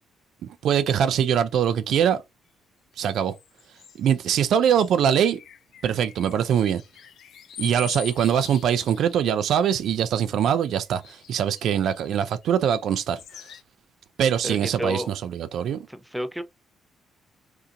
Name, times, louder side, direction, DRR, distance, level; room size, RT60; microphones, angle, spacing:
voice 1, 0.6-2.2 3.0-3.3 4.0-5.4 5.8-6.8 7.6-13.2 14.2-15.9, right 9 dB, 75° right, 0.3 m, -22 dB
sound 1, 3.0-9.3 9.7-10.3 11.0-12.4 12.9-13.6, left 9 dB, 70° left, 0.4 m, -44 dB
voice 2, 14.4-15.1 15.9-16.4, right 1 dB, 5° right, 0.5 m, -30 dB
2.7 x 2.5 x 2.2 m
cardioid pair, 90°, 0 cm